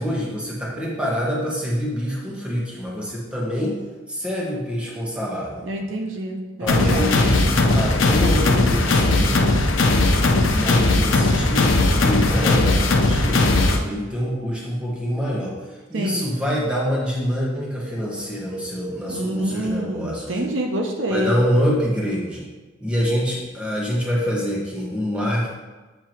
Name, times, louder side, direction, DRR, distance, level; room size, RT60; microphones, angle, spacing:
voice 1, 0.0-3.8 4.1-5.7 6.6-9.5 10.5-13.5 13.8-15.5 15.9-20.3 21.1-22.5 22.8-25.5, equal, 5° right, -4 dB, 1.4 m, -25 dB
voice 2, 5.6-7.1 15.9-16.2 19.1-21.3, right 1 dB, 80° right, 2 dB, 0.9 m, -26 dB
sound 1, 6.7-13.8, left 2 dB, 85° left, 0.7 m, -18 dB
7.9 x 3.6 x 4.4 m, 1.3 s
head